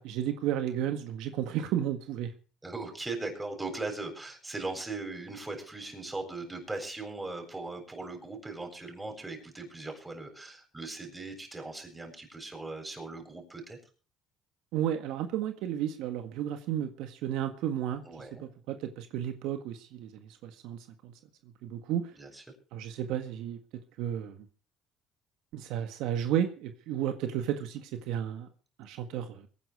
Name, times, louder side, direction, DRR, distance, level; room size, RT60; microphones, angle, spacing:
voice 1, 0.0-2.3 14.7-21.1 21.6-22.1 22.7-24.4 25.5-28.5 28.8-29.5, right 10 dB, 80° right, 1.6 m, -33 dB
voice 2, 2.6-13.8 18.1-18.4 22.2-22.4, right 3 dB, 15° right, 7.5 m, -39 dB
22.5 x 10.0 x 4.8 m
cardioid pair, 100°, 0 cm